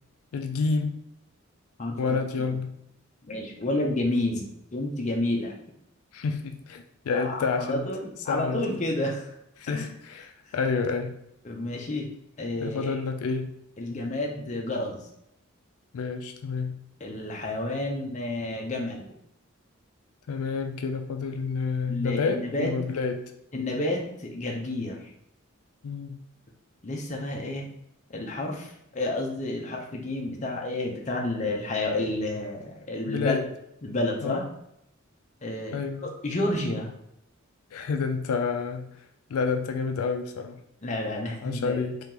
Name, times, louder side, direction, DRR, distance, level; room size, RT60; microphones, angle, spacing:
voice 1, 0.3-1.0 2.0-2.8 6.1-7.8 8.3-8.8 9.6-11.2 12.6-13.5 15.9-16.8 20.3-23.2 25.8-26.2 33.1-33.5 34.2-34.4 35.7-36.1 37.7-38.9 39.3-40.6 41.4-42.0, left 4 dB, 85° left, 6 dB, 0.4 m, -29 dB
voice 2, 3.2-5.6 7.1-9.3 9.7-9.9 11.4-12.1 12.4-12.9 13.8-15.1 17.0-19.1 21.9-22.7 23.5-25.1 26.8-27.7 28.1-33.4 33.8-34.5 35.4-35.8 36.2-36.9 40.8-41.8, left 1 dB, 35° left, 0 dB, 0.6 m, -30 dB
2.9 x 2.8 x 3.7 m, 0.77 s
head